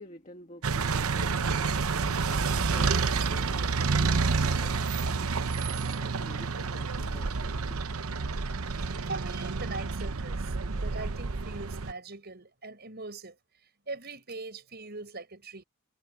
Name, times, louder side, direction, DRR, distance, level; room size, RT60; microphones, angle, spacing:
voice 1, 0.0-7.8, left 1 dB, 35° left, 1.8 m, -49 dB
sound 1, 0.6-11.9, right 4 dB, 85° right, 0.8 m, -29 dB
voice 2, 9.1-10.5 10.8-13.3 13.9-15.6, right 3 dB, 50° right, 6.0 m, -41 dB
head